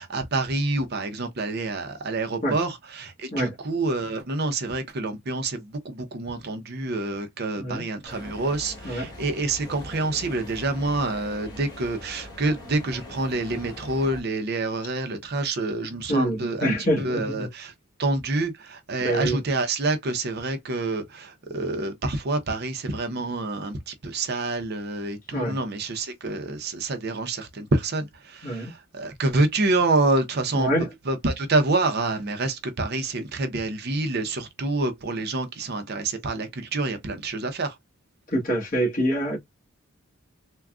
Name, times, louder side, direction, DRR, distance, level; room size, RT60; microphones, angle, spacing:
voice 1, 0.0-17.7 18.0-30.7 31.0-37.8, right 2 dB, 45° right, 0.6 m, -27 dB
sound 1, 8.0-14.2, left 1 dB, 20° left, 1.2 m, -42 dB
voice 2, 16.1-17.5 19.0-19.4 25.3-25.6 28.4-28.7 30.5-30.9 38.3-39.4, right 1 dB, 40° left, 1.3 m, -25 dB
3.6 x 2.2 x 2.3 m
head